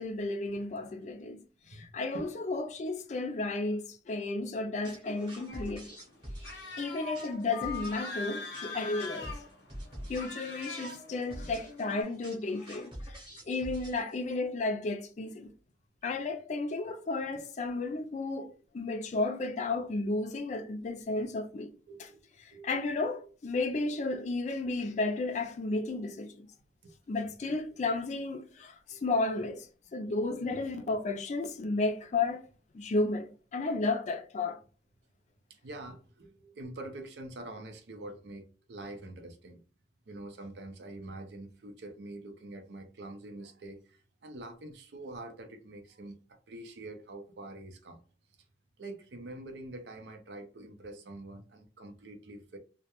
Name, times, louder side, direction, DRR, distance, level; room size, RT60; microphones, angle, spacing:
voice 1, 0.0-1.4 1.7-5.8 6.8-9.3 10.1-13.2 13.5-15.5 16.0-18.5 18.7-21.7 22.6-26.3 27.1-29.7 29.9-32.4 32.7-34.6, left 3 dB, 40° left, 0.4 m, -33 dB
voice 2, 1.7-2.3 7.2-7.3 9.9-10.1 11.4-11.5 13.3-13.4 19.7-19.9 21.1-21.3 21.9-22.7 23.2-23.3 25.7-25.8 26.8-26.9 27.7-27.8 28.9-29.0 35.5-39.6 40.1-48.0 48.8-52.6, right 2 dB, 75° right, 0.5 m, -46 dB
sound 1, 4.8-14.4, equal, 25° right, 0.9 m, -46 dB
sound 2, 5.5-12.0, left 3 dB, 80° left, 0.7 m, -42 dB
2.3 x 2.1 x 2.8 m
head